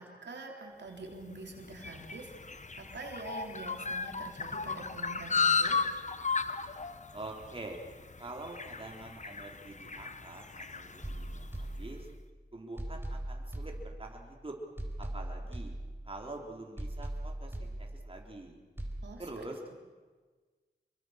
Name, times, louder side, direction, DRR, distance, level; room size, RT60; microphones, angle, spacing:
voice 1, 0.0-5.8 19.0-19.2, right 3 dB, 90° right, 1 dB, 3.5 m, -46 dB
sound 1, 1.1-11.7, left 4 dB, 45° left, 1.1 m, -35 dB
voice 2, 7.1-7.8 8.2-12.1 12.5-14.5 15.0-15.7 16.0-18.6 19.2-19.6, right 2 dB, 30° right, 0 dB, 3.8 m, -45 dB
sound 2, 11.0-12.3 12.8-14.3 14.8-16.3 16.8-18.3 18.8-19.0, right 1 dB, 15° right, 4.3 m, -40 dB
27.0 x 23.0 x 6.6 m, 1.4 s
wide cardioid pair, 75°, 18 cm